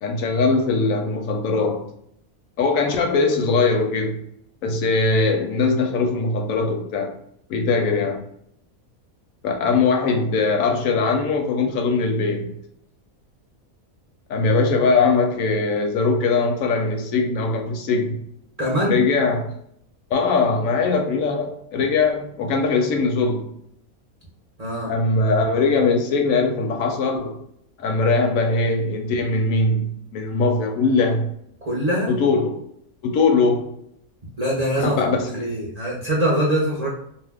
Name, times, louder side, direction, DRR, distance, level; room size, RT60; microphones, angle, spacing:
voice 1, 0.0-1.8 2.6-4.2 4.6-7.1 7.5-8.2 9.4-12.6 14.3-18.2 18.8-19.5 20.1-23.5 24.9-27.4 27.8-31.3 32.1-32.6 33.0-33.7 34.8-35.5, left 3 dB, 75° left, 3 dB, 0.9 m, -21 dB
voice 2, 18.6-19.0 24.6-24.9 31.6-32.1 34.4-35.0 35.3-36.9, right 1 dB, 40° right, -6 dB, 0.6 m, -23 dB
2.6 x 2.1 x 3.4 m, 0.71 s
omnidirectional pair, 1.5 m